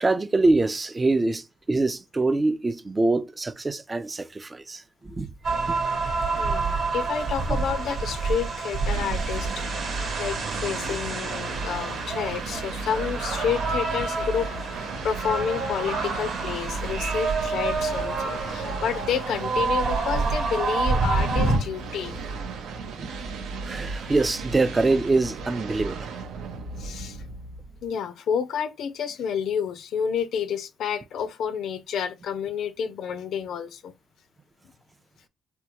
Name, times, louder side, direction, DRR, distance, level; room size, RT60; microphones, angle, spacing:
voice 1, 0.0-5.3 5.7-5.8 23.0-23.1 23.6-26.1, right 2 dB, 25° right, 0.4 m, -24 dB
sound 1, 5.4-21.6, right 3 dB, 60° right, 1.0 m, -28 dB
voice 2, 6.4-9.6 10.2-22.2 26.8-27.2 27.8-33.9, left 7 dB, 75° left, 0.4 m, -30 dB
sound 2, 8.9-27.9, right 4 dB, 85° right, 0.6 m, -35 dB
3.4 x 2.2 x 2.9 m
cardioid pair, 90°, 0 cm